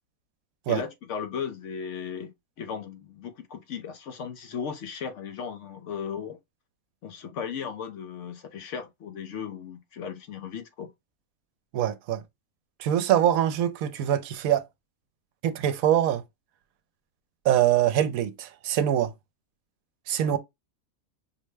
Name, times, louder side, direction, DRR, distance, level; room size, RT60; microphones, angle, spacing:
voice 1, 0.7-6.4 7.0-10.9 20.2-20.4, left 7 dB, 65° left, 0.8 m, -36 dB
voice 2, 11.7-12.2 12.8-14.7 15.4-16.2 17.4-19.1 20.1-20.4, right 11 dB, 75° right, 1.0 m, -24 dB
5.6 x 2.1 x 3.2 m
omnidirectional pair, 1.5 m